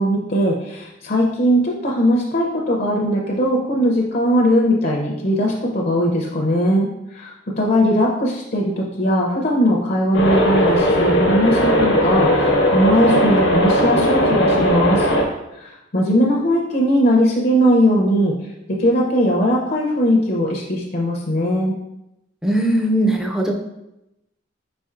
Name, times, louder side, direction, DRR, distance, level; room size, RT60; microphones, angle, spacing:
voice 1, 0.0-15.1 15.6-18.3 18.8-21.7, equal, 50° left, -1 dB, 0.6 m, -19 dB
sound 1, 10.1-15.2, equal, 90° left, 1.0 m, -17 dB
voice 2, 22.4-23.5, right 1 dB, 5° right, 1 dB, 0.4 m, -19 dB
5.0 x 4.3 x 2.4 m, 0.89 s
head